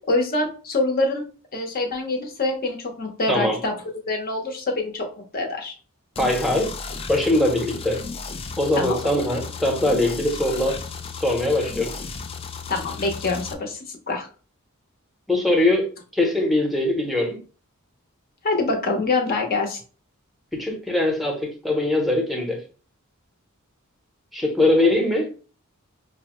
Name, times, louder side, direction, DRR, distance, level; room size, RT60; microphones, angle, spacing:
voice 1, 0.1-1.2 1.5-3.7 4.1-5.7 8.7-9.0 12.7-14.3 18.4-19.8, left 2 dB, 45° left, 0.8 m, -25 dB
sound 1, 6.2-13.5, left 4 dB, 25° left, 0.3 m, -34 dB
voice 2, 6.2-6.7 7.1-8.0 8.6-10.8 11.1-11.9 15.3-15.9 16.1-17.4 20.5-22.6 24.3-25.3, left 1 dB, ahead, 0.8 m, -21 dB
5.3 x 2.0 x 3.0 m
head